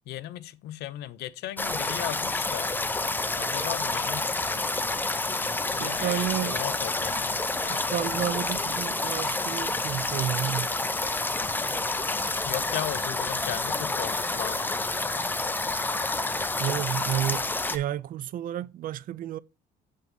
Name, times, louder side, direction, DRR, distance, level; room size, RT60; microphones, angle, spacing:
voice 1, 0.1-2.7 3.4-4.7 5.7-7.9 12.4-14.7, left 14 dB, 75° left, 0.7 m, -37 dB
sound 1, 1.6-17.8, left 2 dB, 10° left, 0.6 m, -29 dB
voice 2, 5.8-6.7 7.7-10.7 16.6-19.4, right 12 dB, 55° right, 0.4 m, -31 dB
8.2 x 3.5 x 5.3 m
cardioid pair, 110°, 17 cm